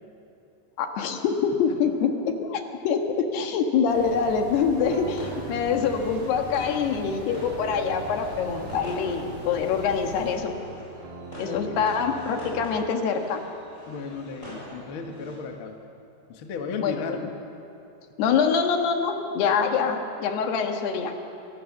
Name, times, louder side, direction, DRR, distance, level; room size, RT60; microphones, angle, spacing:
voice 1, 0.8-10.6 11.4-13.4 16.8-17.2 18.2-21.1, left 6 dB, 85° left, 4 dB, 3.6 m, -25 dB
sound 1, 3.9-10.3, right 1 dB, 50° right, 5.9 m, -42 dB
sound 2, 4.9-12.9, right 4 dB, 90° right, 3.7 m, -42 dB
sound 3, 5.1-15.4, equal, 20° left, 8.1 m, -43 dB
voice 2, 11.4-11.9 13.9-15.8 16.3-17.2, left 5 dB, 50° left, 3 dB, 1.7 m, -35 dB
25.5 x 18.5 x 7.3 m, 2.8 s
omnidirectional pair, 4.5 m